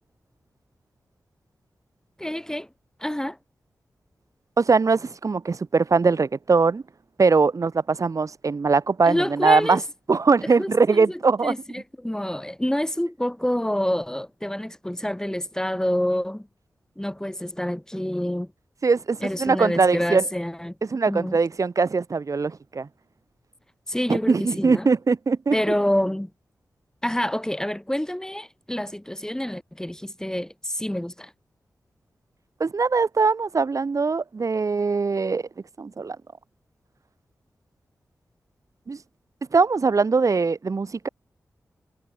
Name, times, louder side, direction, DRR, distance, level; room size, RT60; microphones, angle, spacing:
voice 1, 2.2-2.7 3.0-3.4 9.0-9.8 10.6-16.5 17.0-18.5 19.2-20.7 21.1-21.4 23.9-24.9 25.5-26.3 27.0-31.3, left 1 dB, 10° left, 3.5 m, -27 dB
voice 2, 4.6-6.8 7.2-9.8 10.1-11.5 18.8-20.3 20.9-22.9 24.1-25.5 32.6-35.4 35.8-36.2 38.9-39.0 39.5-41.1, right 4 dB, 60° right, 4.4 m, -21 dB
cardioid pair, 45°, 6 cm